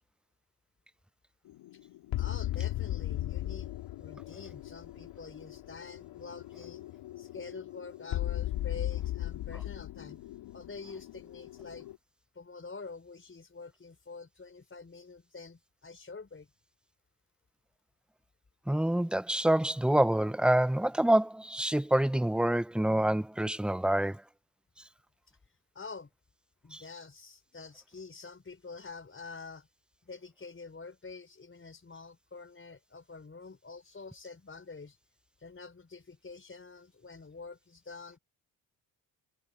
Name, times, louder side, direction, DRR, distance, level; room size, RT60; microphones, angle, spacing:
sound 1, 1.5-12.0, left 14 dB, 75° left, 4.3 m, -37 dB
voice 1, 2.2-6.9 7.2-10.2 10.5-11.9 12.3-16.5 25.7-26.1 26.6-29.7 30.1-35.0 35.4-38.2, left 4 dB, 25° left, 5.6 m, -47 dB
voice 2, 18.7-24.2 26.7-26.8, right 1 dB, ahead, 0.7 m, -27 dB
supercardioid pair, 65°, 45 cm